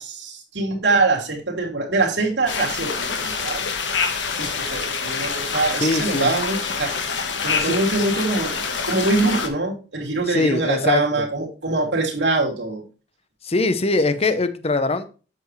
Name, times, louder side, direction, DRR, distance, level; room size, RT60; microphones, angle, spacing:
voice 1, 0.0-3.6 4.4-6.9 7.4-12.8, right 3 dB, 75° right, 0 dB, 2.7 m, -23 dB
sound 1, 2.5-9.5, left 5 dB, 85° left, 1.4 m, -26 dB
voice 2, 5.8-6.3 7.6-7.7 10.3-11.2 13.4-15.1, left 3 dB, 35° left, 11 dB, 0.7 m, -22 dB
8.1 x 7.1 x 3.2 m, 0.35 s
head